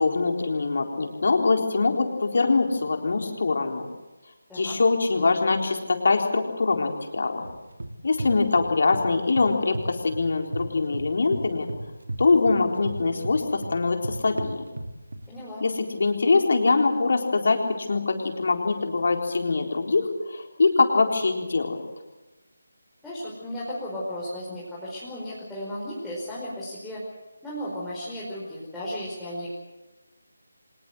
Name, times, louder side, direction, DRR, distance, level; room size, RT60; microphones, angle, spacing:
voice 1, 0.0-3.8 4.5-7.5 8.0-11.7 12.2-14.6 15.6-21.8, left 3 dB, 55° left, 3 dB, 4.0 m, -23 dB
sound 1, 7.4-9.1 9.4-10.7 10.9-15.2, right 1 dB, 70° right, 2.9 m, -34 dB
voice 2, 15.3-15.6 23.0-27.0 27.4-29.6, equal, 5° left, -9 dB, 5.2 m, -35 dB
25.5 x 20.0 x 8.1 m, 1.1 s
figure-of-eight pair, 155°, 0 cm